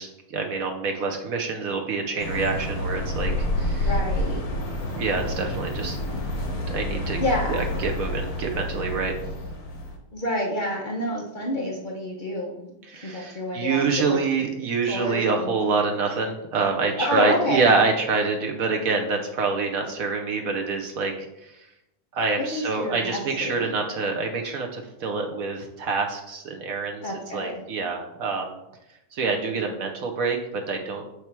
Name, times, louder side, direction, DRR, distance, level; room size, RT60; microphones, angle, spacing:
voice 1, 0.0-3.9 5.0-6.0 6.7-7.2 7.5-9.1 12.9-21.6 22.1-28.6 29.1-30.4 30.7-31.0, right 4 dB, 70° right, 3 dB, 0.8 m, -26 dB
sound 1, 2.2-10.0, left 1 dB, 65° left, 1.9 m, -29 dB
voice 2, 3.8-4.4 7.2-7.6 10.1-12.7 13.0-14.2 14.8-15.6 17.0-17.7 22.4-23.7 27.0-27.6, left 1 dB, 50° left, -3 dB, 0.6 m, -28 dB
6.2 x 3.3 x 5.9 m, 0.88 s
omnidirectional pair, 2.2 m